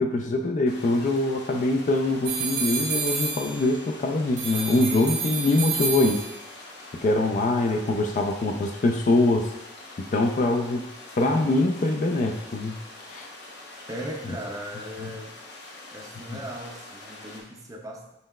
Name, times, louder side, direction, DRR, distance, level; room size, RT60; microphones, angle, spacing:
voice 1, 0.0-6.2 6.9-9.5 10.0-10.9 11.2-12.8 13.1-13.3 16.3-16.4, left 2 dB, 45° left, 4 dB, 0.4 m, -23 dB
sound 1, 0.7-17.4, left 2 dB, 70° left, 0.8 m, -44 dB
sound 2, 2.2-3.9 4.4-6.6, right 4 dB, 90° right, 0.9 m, -30 dB
voice 2, 13.9-15.4 15.9-18.1, equal, 20° right, 0 dB, 0.5 m, -38 dB
5.5 x 3.1 x 2.2 m, 0.90 s
head